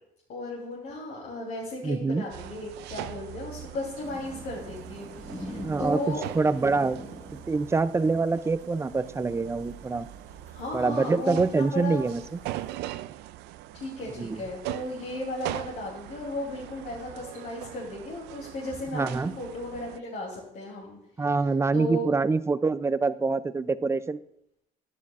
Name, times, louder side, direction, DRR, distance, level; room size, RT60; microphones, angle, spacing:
voice 1, 0.3-6.2 10.5-12.1 13.7-21.0 21.7-22.1, left 1 dB, 65° left, -4 dB, 3.1 m, -35 dB
voice 2, 1.8-2.2 5.6-7.0 7.5-10.1 10.7-12.4 14.2-14.4 18.9-19.3 21.2-24.2, right 4 dB, 15° right, 15 dB, 0.4 m, -25 dB
sound 1, 2.3-20.0, right 14 dB, 85° right, 0.4 m, -41 dB
sound 2, 4.0-12.7, left 1 dB, 15° left, 1.6 m, -46 dB
11.0 x 10.5 x 2.4 m, 0.79 s
cardioid pair, 110°, 17 cm